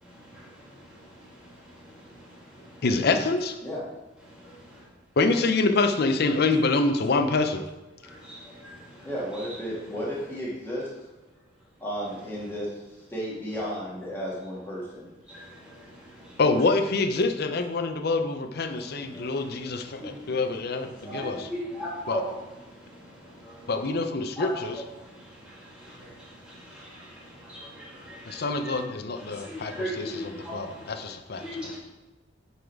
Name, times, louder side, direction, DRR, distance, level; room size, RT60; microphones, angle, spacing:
voice 1, 0.0-2.8 4.3-4.9 8.0-9.6 15.3-16.4 18.7-20.5 20.9-22.3 22.6-23.7 24.4-24.5 25.0-28.8 29.2-31.8, equal, 5° right, -6 dB, 2.4 m, -40 dB
voice 2, 2.8-3.6 5.2-7.6 16.4-21.5 22.1-22.2 23.7-24.8 28.2-31.7, left 3 dB, 55° left, 8 dB, 0.6 m, -26 dB
voice 3, 9.0-10.9 11.8-12.7 13.1-15.1, equal, 10° left, -7 dB, 2.0 m, -33 dB
8.2 x 4.0 x 4.5 m, 1.1 s
head